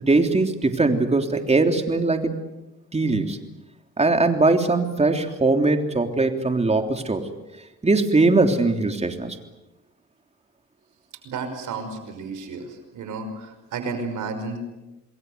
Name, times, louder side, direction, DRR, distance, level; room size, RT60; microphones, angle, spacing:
voice 1, 0.1-2.3 2.9-3.4 4.0-7.3 7.8-9.4, right 3 dB, 20° right, 5 dB, 3.4 m, -20 dB
voice 2, 11.2-14.6, right 4 dB, 80° right, 8 dB, 5.7 m, -32 dB
27.5 x 21.5 x 8.1 m, 1.0 s
cardioid pair, 90°, 30 cm